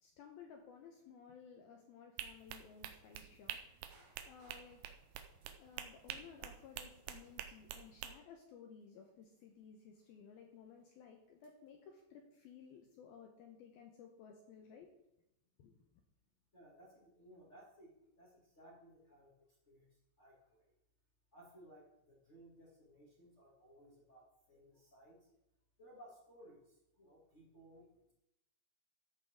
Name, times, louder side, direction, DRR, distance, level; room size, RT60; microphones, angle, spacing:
voice 1, 0.0-4.8 5.6-14.9 15.6-15.8, left 6 dB, 75° left, 2 dB, 2.3 m, -57 dB
sound 1, 2.2-8.1, right 10 dB, 85° right, 2.2 m, -47 dB
sound 2, 3.9-11.9, right 2 dB, 70° right, 4.6 m, -72 dB
voice 2, 16.5-19.9 20.2-20.6 21.3-25.3 25.8-28.1, right 1 dB, 35° left, -6 dB, 1.2 m, -61 dB
13.5 x 9.0 x 3.6 m, 0.86 s
omnidirectional pair, 5.4 m